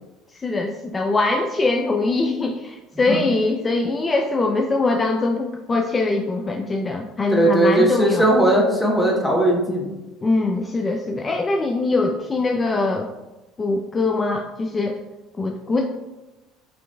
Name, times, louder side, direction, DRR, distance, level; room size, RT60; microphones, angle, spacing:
voice 1, 0.3-8.3 10.2-13.1 13.6-15.0 15.4-15.9, left 3 dB, 25° left, 3 dB, 0.3 m, -22 dB
voice 2, 7.3-9.9, right 1 dB, 5° left, -2 dB, 1.0 m, -18 dB
5.0 x 2.8 x 2.3 m, 1.1 s
hypercardioid pair, 70°, 0 cm